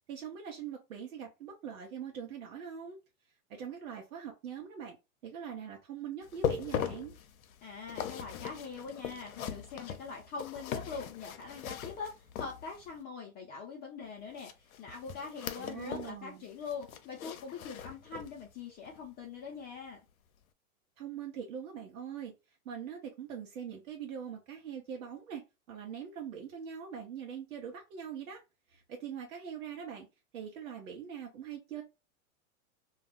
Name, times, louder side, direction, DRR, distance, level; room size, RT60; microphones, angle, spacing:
voice 1, 0.1-3.0 3.5-5.0 5.2-7.1 15.5-16.5 21.0-25.4 25.7-28.4 28.7-30.1 30.3-31.8, right 8 dB, 75° right, 0.9 m, -42 dB
sound 1, 6.2-13.0 14.4-16.2 16.5-18.4 18.9-19.0 19.5-19.6, left 9 dB, 80° left, 0.6 m, -40 dB
voice 2, 7.6-20.0, left 5 dB, 25° left, 0.6 m, -43 dB
2.3 x 2.3 x 3.5 m
hypercardioid pair, 115°, 42 cm